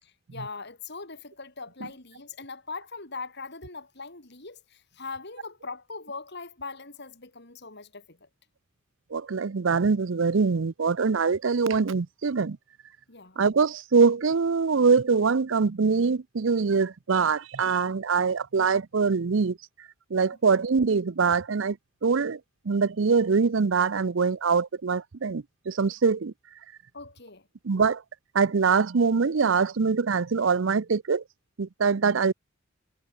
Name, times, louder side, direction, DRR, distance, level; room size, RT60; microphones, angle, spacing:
voice 1, 0.0-8.3 13.1-13.4 26.9-27.5, left 4 dB, 55° left, 4.4 m, -41 dB
voice 2, 9.1-12.6 13.4-19.6 20.1-21.8 22.0-22.4 22.7-26.3 27.6-28.0 28.3-31.2 31.6-32.3, right 5 dB, 65° right, 0.6 m, -23 dB
head